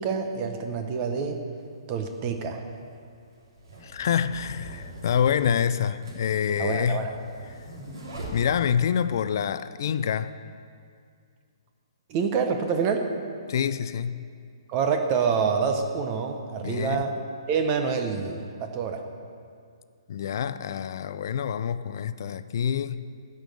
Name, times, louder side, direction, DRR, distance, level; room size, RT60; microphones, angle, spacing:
voice 1, 0.0-1.4 1.9-2.6 6.6-7.1 12.1-13.1 14.7-19.0, right 5 dB, 20° right, 5 dB, 0.7 m, -27 dB
sound 1, 1.6-1.7 2.6-9.0, right 1 dB, 55° right, 2.9 m, -42 dB
voice 2, 3.8-7.1 7.5-7.6 8.3-10.3 13.5-14.2 16.6-17.0 20.1-23.0, left 8 dB, 45° left, 13 dB, 0.4 m, -26 dB
13.0 x 5.4 x 7.7 m, 2.2 s
hypercardioid pair, 170°, 3 cm